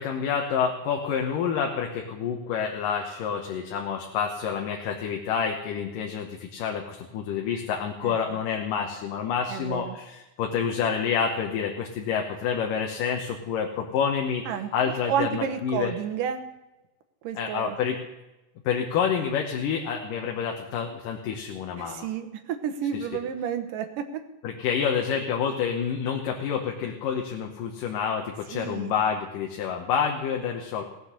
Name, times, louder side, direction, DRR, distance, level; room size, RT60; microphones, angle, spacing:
voice 1, 0.0-14.4 14.7-15.9 17.4-18.0 18.7-22.1 22.9-23.1 24.4-30.8, left 7 dB, 85° left, 2 dB, 2.8 m, -28 dB
voice 2, 8.0-8.4 9.5-10.0 14.5-14.7 15.1-16.5 17.2-17.8 21.8-24.2 28.5-28.9, right 8 dB, 85° right, 6 dB, 2.8 m, -31 dB
18.0 x 8.0 x 6.7 m, 1.0 s
omnidirectional pair, 3.7 m